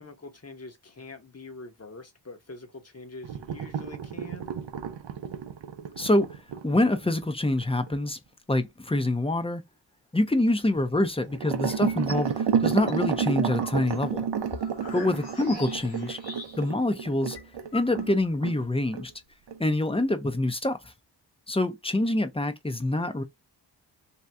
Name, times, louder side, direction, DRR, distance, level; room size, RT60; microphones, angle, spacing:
voice 1, 0.0-4.5 14.8-15.2, left 3 dB, 35° left, 1.1 m, -44 dB
sound 1, 3.2-7.9 11.3-18.1 18.4-18.6 18.9-19.0 19.5-19.6, right 7 dB, 70° right, 0.6 m, -31 dB
voice 2, 6.0-8.2 8.5-9.6 10.1-14.2 14.9-16.2 16.6-17.4 17.7-19.1 19.6-20.9 21.5-23.2, left 1 dB, 10° left, 0.7 m, -26 dB
sound 2, 11.7-12.3 12.7-16.8 17.1-17.2 17.4-18.3, left 3 dB, 55° left, 1.5 m, -42 dB
2.8 x 2.3 x 3.4 m
cardioid pair, 45°, 45 cm